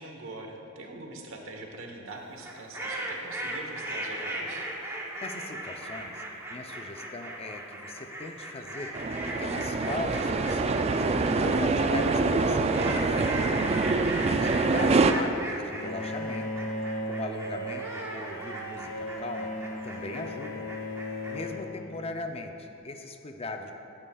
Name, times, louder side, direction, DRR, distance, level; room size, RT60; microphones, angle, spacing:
voice 1, 0.0-4.7, right 2 dB, 75° right, 2 dB, 1.1 m, -43 dB
sound 1, 2.4-21.5, right 1 dB, 15° right, 0.8 m, -38 dB
voice 2, 5.2-8.9 9.3-10.9 11.4-13.7 14.0-16.7 17.0-19.6 19.8-20.7 21.3-23.7, left 2 dB, 30° left, 5 dB, 0.5 m, -39 dB
sound 2, 8.9-15.1, right 3 dB, 30° right, 0.3 m, -25 dB
Bowed string instrument, 15.7-22.5, left 1 dB, 80° left, 1.5 m, -37 dB
14.5 x 8.9 x 2.3 m, 3.0 s
head